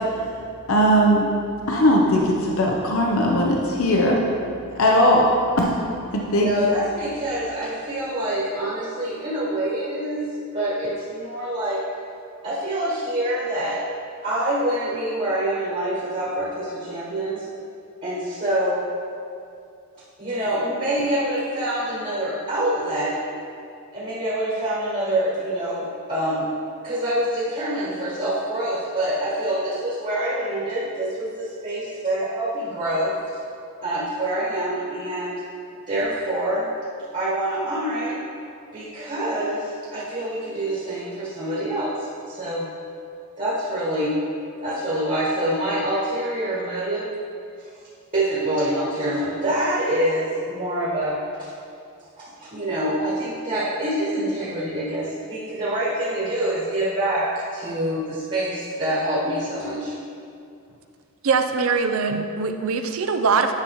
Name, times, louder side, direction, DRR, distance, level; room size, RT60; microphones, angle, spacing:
voice 1, 0.7-1.3 1.7-4.2 4.8-5.3 5.6-5.7 6.1-6.5, equal, 70° left, -1 dB, 0.7 m, -18 dB
voice 2, 6.3-11.8 12.4-13.8 14.2-17.4 18.0-18.9 20.2-23.2 23.9-26.5 26.8-33.2 33.8-35.4 35.9-36.7 37.1-38.2 38.7-42.7 43.4-44.2 44.6-47.1 48.1-51.5 52.2-59.9, right 1 dB, 40° right, -8 dB, 1.5 m, -26 dB
voice 3, 61.2-63.5, right 5 dB, 70° right, 7 dB, 0.5 m, -22 dB
9.7 x 5.7 x 3.1 m, 2.4 s
head